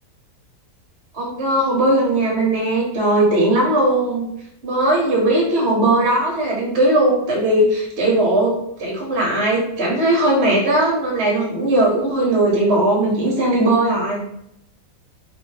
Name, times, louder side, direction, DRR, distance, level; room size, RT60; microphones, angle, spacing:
voice 1, 1.1-4.3 4.6-14.2, right 1 dB, 45° right, -3 dB, 1.1 m, -18 dB
3.3 x 2.9 x 3.1 m, 0.75 s
omnidirectional pair, 1.8 m